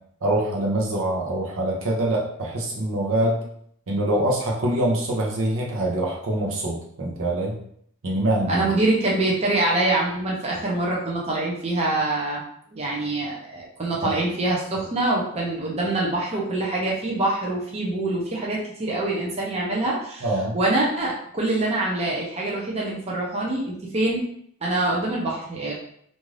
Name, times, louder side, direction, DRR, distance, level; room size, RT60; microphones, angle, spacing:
voice 1, 0.2-3.4 3.9-7.6 8.0-8.7 14.0-14.1 20.2-20.6, right 1 dB, 65° right, -2 dB, 0.7 m, -24 dB
voice 2, 8.5-12.4 12.7-20.2 20.5-24.3 24.6-25.7, right 2 dB, 30° right, -3 dB, 0.6 m, -25 dB
2.6 x 2.4 x 3.1 m, 0.65 s
head